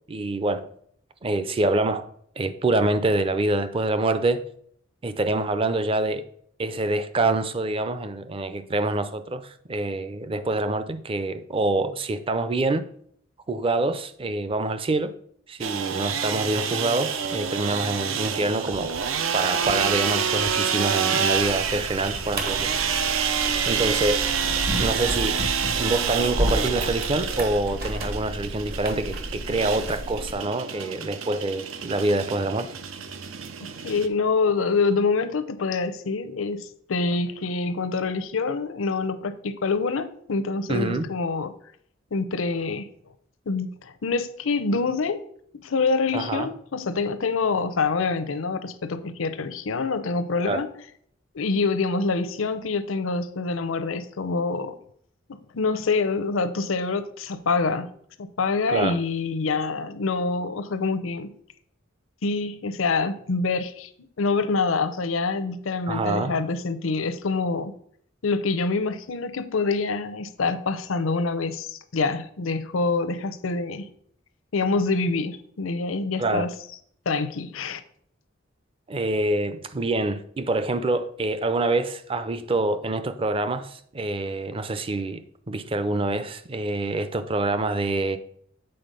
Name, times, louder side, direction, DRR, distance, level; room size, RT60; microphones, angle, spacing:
voice 1, 0.1-0.7 1.2-2.1 2.4-4.4 5.0-6.2 6.6-12.8 13.5-15.1 15.5-19.0 19.3-22.8 23.6-24.3 24.8-25.4 25.8-32.7 40.7-41.1 46.1-46.5 50.5-50.6 58.7-59.0 65.9-66.3 76.2-76.5 78.9-88.2, right 2 dB, 30° right, 0.5 m, -26 dB
sound 1, 15.6-34.1, right 7 dB, 85° right, 0.6 m, -28 dB
sound 2, 21.3-30.3, equal, 50° right, 1.2 m, -32 dB
voice 2, 33.8-41.5 42.1-42.9 43.5-45.2 45.6-50.7 51.3-54.7 55.3-57.9 58.2-61.3 62.2-63.9 64.2-67.7 68.2-73.9 74.5-76.5 77.1-77.8, left 4 dB, 85° left, 0.6 m, -26 dB
7.8 x 4.2 x 5.2 m
head